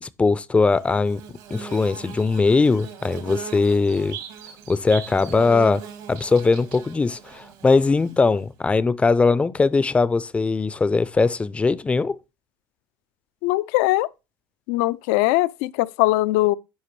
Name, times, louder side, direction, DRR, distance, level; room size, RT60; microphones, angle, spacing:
voice 1, 0.0-1.2 1.5-4.2 4.7-5.8 6.1-12.2, left 4 dB, 15° left, 0.4 m, -20 dB
Bird / Buzz, 0.7-8.4, right 8 dB, 70° right, 1.7 m, -39 dB
voice 2, 13.4-14.1 14.7-16.6, left 18 dB, 75° left, 0.4 m, -20 dB
10.0 x 5.1 x 3.1 m
supercardioid pair, 115°, 9 cm